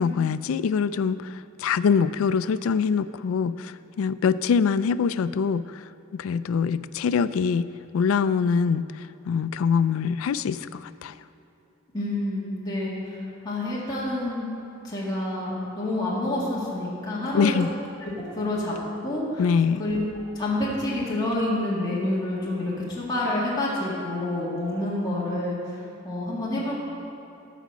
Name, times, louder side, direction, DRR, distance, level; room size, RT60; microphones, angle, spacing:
voice 1, 0.0-5.8 6.1-7.7 7.9-11.1 17.3-17.7 19.4-19.8, left 6 dB, 85° left, 15 dB, 0.3 m, -24 dB
voice 2, 11.9-14.5 14.8-17.6 18.0-18.7 19.0-19.4 19.8-20.1 20.4-26.8, left 1 dB, 20° left, -7 dB, 1.8 m, -28 dB
13.5 x 5.0 x 6.2 m, 2.9 s
head